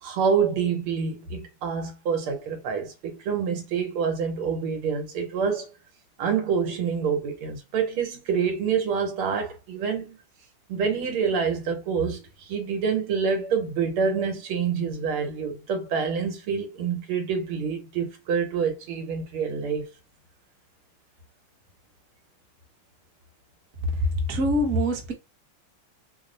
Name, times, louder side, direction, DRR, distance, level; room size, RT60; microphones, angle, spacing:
voice 1, 0.0-5.7 6.2-10.2 10.7-19.9, right 6 dB, 90° right, 1.9 m, -27 dB
voice 2, 24.0-25.1, equal, 50° right, 1.1 m, -24 dB
3.9 x 2.1 x 3.8 m
omnidirectional pair, 2.3 m